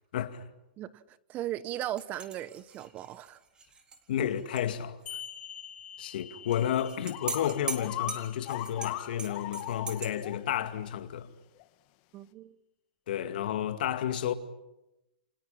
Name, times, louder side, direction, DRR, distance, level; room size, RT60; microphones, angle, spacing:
voice 1, 0.1-0.5 4.1-5.0 6.0-11.3 13.1-14.3, left 10 dB, 70° left, 2.3 m, -31 dB
voice 2, 0.8-3.4 4.2-4.3 12.1-12.6, right 13 dB, 30° right, 1.1 m, -37 dB
sound 1, 2.0-4.7 5.0-5.1 6.5-10.1, right 4 dB, 15° right, 3.7 m, -41 dB
sound 2, 5.1-10.1, left 9 dB, 25° left, 2.6 m, -48 dB
sound 3, 6.8-6.9 7.1-10.4 10.8-10.9 11.6-11.7, left 16 dB, 45° left, 1.8 m, -39 dB
29.5 x 27.0 x 5.8 m
hypercardioid pair, 130°, 5 cm